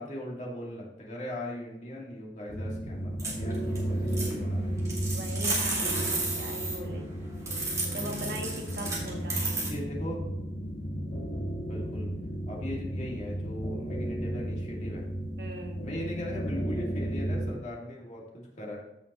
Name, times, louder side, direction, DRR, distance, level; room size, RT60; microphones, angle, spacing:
voice 1, 0.0-4.8 9.6-10.3 11.5-12.1 12.5-15.1 15.8-18.8, left 1 dB, 40° left, -3 dB, 2.2 m, -39 dB
sound 1, 2.5-17.5, right 1 dB, 65° left, 2.1 m, -34 dB
sound 2, 3.2-3.8 4.1-4.3 4.8-6.8 7.5-9.7, right 2 dB, 15° right, 2.4 m, -32 dB
voice 2, 5.1-7.2 7.9-9.6 15.4-15.8, right 1 dB, 55° right, 2 dB, 1.4 m, -40 dB
15.0 x 5.6 x 3.0 m, 0.91 s
head